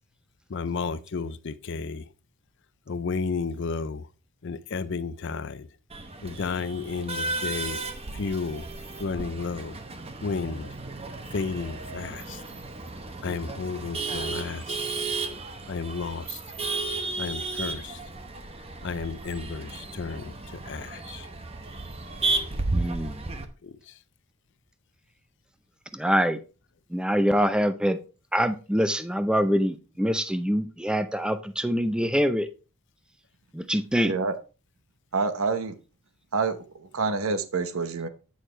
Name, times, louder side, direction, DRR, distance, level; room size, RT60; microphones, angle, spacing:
voice 1, 0.5-2.1 2.9-4.1 4.4-5.7 6.2-7.8 8.1-8.7 9.0-9.8 10.2-10.7 11.3-12.4 13.2-14.8 15.7-16.4 17.2-18.0 18.8-21.3 23.6-24.0, left 4 dB, 55° left, 0.5 m, -32 dB
Male speech man speaking / Laughter / Chatter, 5.9-23.5, right 3 dB, 25° right, 0.8 m, -34 dB
voice 2, 22.7-23.2 25.9-26.4 26.9-28.0 28.3-32.5 33.5-34.1, equal, 5° right, 0.5 m, -25 dB
voice 3, 35.1-35.8 36.3-38.1, right 4 dB, 70° right, 0.9 m, -27 dB
9.3 x 6.5 x 3.3 m
head